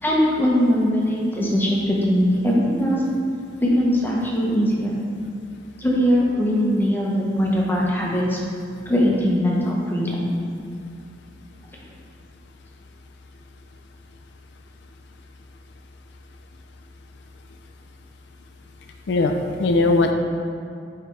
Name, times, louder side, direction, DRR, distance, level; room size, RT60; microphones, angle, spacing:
voice 1, 0.0-3.0 3.6-4.9 5.8-8.4 8.9-10.3, equal, 10° left, -4 dB, 0.9 m, -21 dB
voice 2, 19.1-20.1, left 2 dB, 70° left, 4 dB, 0.4 m, -21 dB
8.8 x 3.3 x 3.3 m, 2.4 s
head